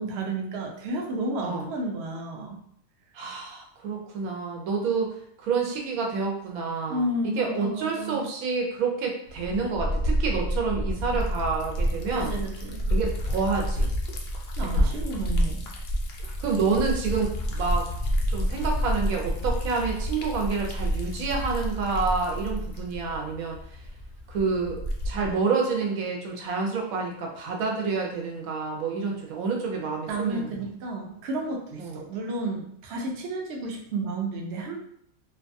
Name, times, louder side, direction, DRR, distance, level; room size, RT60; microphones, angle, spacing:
voice 1, 0.0-2.6 6.9-8.3 12.1-12.8 14.6-15.7 30.1-34.8, right 2 dB, 65° right, 0 dB, 0.8 m, -32 dB
voice 2, 3.1-12.3 12.9-13.9 14.6-14.9 16.4-17.9 18.3-23.6 24.3-30.5 31.8-32.0, right 4 dB, 90° right, 0 dB, 1.1 m, -28 dB
Liquid, 9.3-25.4, equal, 65° left, 0.6 m, -29 dB
2.6 x 2.2 x 2.6 m, 0.66 s
omnidirectional pair, 1.4 m